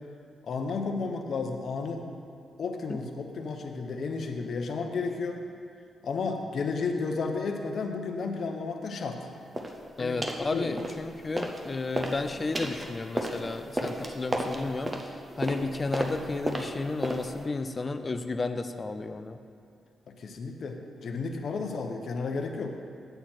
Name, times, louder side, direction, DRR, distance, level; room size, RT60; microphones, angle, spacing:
voice 1, 0.5-2.0 2.6-5.4 6.0-9.2 10.0-10.8 20.1-22.7, left 4 dB, 55° left, 4 dB, 0.7 m, -32 dB
sound 1, 9.5-9.8 10.2-10.5 10.8-11.6 11.9-17.4, right 1 dB, 20° right, 0.7 m, -33 dB
voice 2, 10.0-19.4, left 3 dB, 25° left, 9 dB, 0.4 m, -32 dB
7.8 x 7.8 x 4.4 m, 2.4 s
cardioid pair, 120°, 0 cm